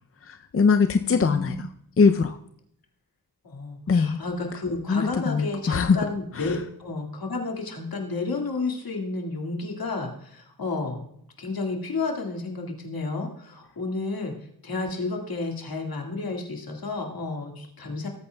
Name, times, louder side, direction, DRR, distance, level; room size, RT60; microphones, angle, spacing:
voice 1, 0.3-1.5 2.0-2.4 3.9-4.2 4.9-6.0 6.4-6.5, left 5 dB, 35° left, 7 dB, 0.6 m, -21 dB
voice 2, 1.0-1.6 3.4-11.0 11.4-14.3 14.6-18.1, left 3 dB, 70° left, 1 dB, 2.1 m, -31 dB
19.0 x 8.6 x 2.3 m, 0.71 s
cardioid pair, 60°, 37 cm